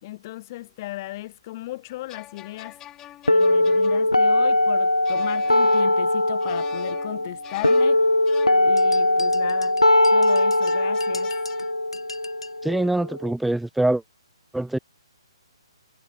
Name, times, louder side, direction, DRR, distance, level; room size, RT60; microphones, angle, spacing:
voice 1, 0.0-2.8 3.3-8.1 8.6-9.8 10.1-11.3, left 17 dB, 30° left, 2.3 m, -36 dB
sound 1, 1.9-9.3 10.3-11.7, left 13 dB, 15° left, 1.3 m, -44 dB
sound 2, 3.3-13.3, left 1 dB, 90° left, 0.5 m, -20 dB
sound 3, 8.8-12.6, left 4 dB, 70° left, 4.2 m, -41 dB
voice 2, 12.6-14.0 14.5-14.8, right 1 dB, ahead, 0.4 m, -23 dB
figure-of-eight pair, 130°, 3 cm